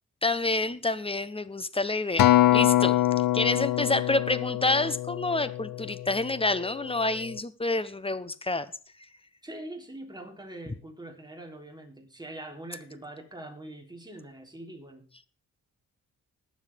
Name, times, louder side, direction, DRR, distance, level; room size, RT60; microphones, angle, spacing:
voice 1, 0.2-3.0 3.3-8.7, left 2 dB, 15° left, 14 dB, 1.1 m, -28 dB
Acoustic guitar, 2.2-6.6 7.2-7.4, left 14 dB, 80° left, 0.7 m, -24 dB
voice 2, 9.4-15.1, right 1 dB, 10° right, 2 dB, 3.6 m, -43 dB
20.0 x 7.3 x 3.6 m, 0.39 s
cardioid pair, 70°, 33 cm